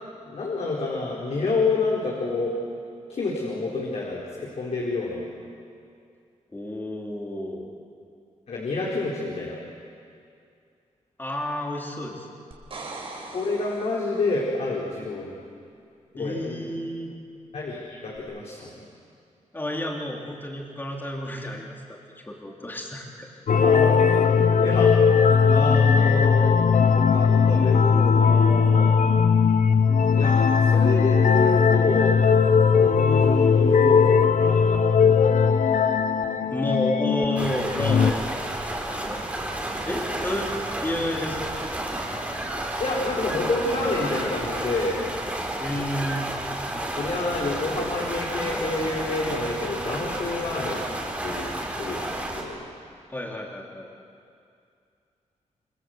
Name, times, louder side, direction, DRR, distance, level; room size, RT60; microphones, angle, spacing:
voice 1, 0.2-2.6 3.1-5.2 8.5-9.6 13.3-15.4 16.1-16.6 17.5-18.7 23.5-24.9 25.2-28.9 30.1-32.2 32.7-34.8 35.1-35.2 42.8-45.0 46.8-50.9 51.2-51.5 51.8-52.6, left 3 dB, 60° left, -4 dB, 4.3 m, -28 dB
voice 2, 6.5-7.7 11.2-12.3 16.1-17.1 19.5-23.3 36.5-38.2 38.9-39.2 39.9-40.5 40.8-41.5 45.6-46.3 53.1-53.9, left 1 dB, 15° left, -1 dB, 3.6 m, -31 dB
sound 1, 12.5-14.4 18.1-18.2, right 3 dB, 45° right, 4.5 m, -40 dB
sound 2, 23.5-38.1, left 6 dB, 80° left, 1.1 m, -19 dB
sound 3, 37.4-52.4, right 1 dB, 10° right, 4.1 m, -31 dB
28.0 x 25.5 x 8.0 m, 2.4 s
wide cardioid pair, 150°, 13 cm